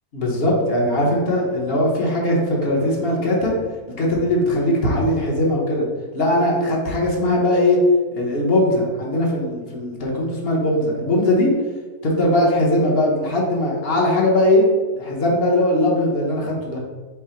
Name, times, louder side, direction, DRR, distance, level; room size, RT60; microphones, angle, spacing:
voice 1, 0.1-3.5 4.0-5.8 6.1-7.8 8.2-11.5 12.0-14.7 15.0-16.8, left 1 dB, 45° left, -2 dB, 1.0 m, -20 dB
5.6 x 2.2 x 4.3 m, 1.4 s
omnidirectional pair, 1.7 m